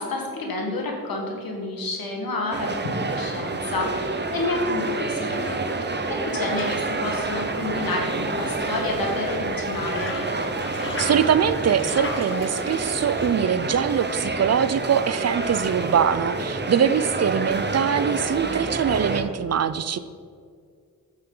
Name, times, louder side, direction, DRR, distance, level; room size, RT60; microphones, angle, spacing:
voice 1, 0.0-10.2, left 2 dB, 85° left, 0 dB, 1.6 m, -29 dB
sound 1, 2.5-19.2, right 3 dB, 30° right, 0.8 m, -28 dB
sound 2, 6.4-13.4, left 3 dB, 35° left, 1.0 m, -38 dB
voice 2, 11.0-20.0, right 8 dB, 50° right, 14 dB, 0.5 m, -23 dB
8.8 x 7.3 x 3.9 m, 2.2 s
cardioid pair, 65°, 34 cm